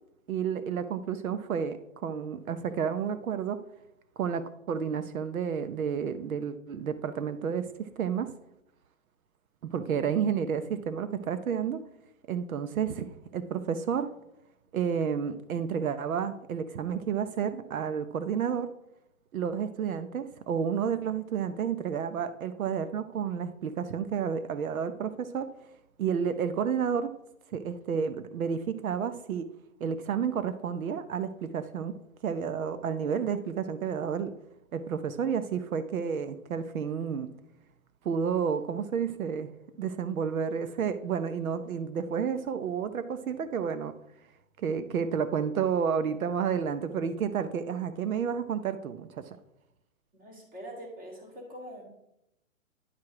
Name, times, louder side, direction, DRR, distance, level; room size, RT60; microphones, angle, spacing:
voice 1, 0.3-3.6 4.2-8.3 9.6-11.8 12.3-14.1 14.7-18.7 19.3-25.5 26.0-27.1 27.5-29.5 29.8-32.0 32.2-34.3 34.7-37.3 38.0-39.5 39.8-43.9 44.6-49.4, right 7 dB, 85° right, 11 dB, 0.8 m, -31 dB
voice 2, 50.1-51.8, equal, 20° right, 0 dB, 2.0 m, -44 dB
10.0 x 4.7 x 4.8 m, 0.86 s
hypercardioid pair, 160°, 41 cm